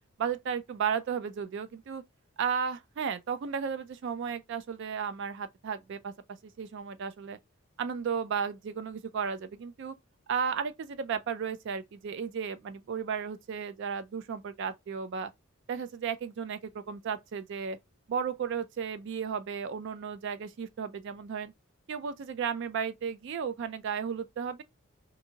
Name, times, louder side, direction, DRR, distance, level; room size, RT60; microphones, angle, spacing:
voice 1, 0.2-2.0 2.4-6.1 6.6-7.4 7.8-9.9 10.3-15.3 15.7-17.8 18.1-21.5 21.9-24.6, right 6 dB, 55° right, 0.3 m, -34 dB
2.7 x 2.6 x 2.6 m
head